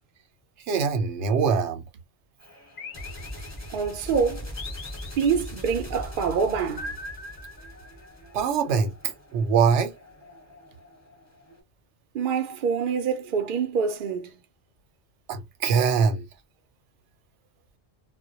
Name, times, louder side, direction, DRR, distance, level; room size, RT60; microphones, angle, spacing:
voice 1, 0.7-1.8 8.3-9.9 15.3-16.2, right 6 dB, 85° right, 0.9 m, -23 dB
sound 1, 2.4-11.6, left 1 dB, 15° left, 0.8 m, -41 dB
sound 2, 2.8-3.9 4.6-5.7 6.8-8.2, left 3 dB, 55° left, 0.7 m, -41 dB
voice 2, 3.7-4.5 5.2-6.9 12.1-14.3, right 6 dB, 60° right, 0.6 m, -26 dB
2.2 x 2.1 x 2.8 m
omnidirectional pair, 1.2 m